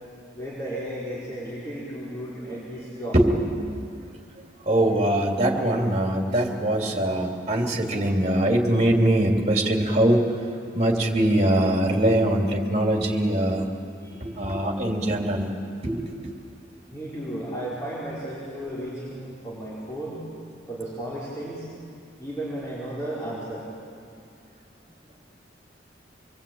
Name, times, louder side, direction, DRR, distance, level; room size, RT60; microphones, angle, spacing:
voice 1, 0.3-3.2 14.0-14.2 16.9-20.2 20.7-21.7 22.2-23.7, right 1 dB, 15° left, -9 dB, 5.2 m, -34 dB
voice 2, 3.1-3.9 4.6-10.3 10.7-13.7 14.2-15.5 15.8-16.0, right 1 dB, 35° right, 0 dB, 3.2 m, -22 dB
25.5 x 23.0 x 8.9 m, 2.4 s
head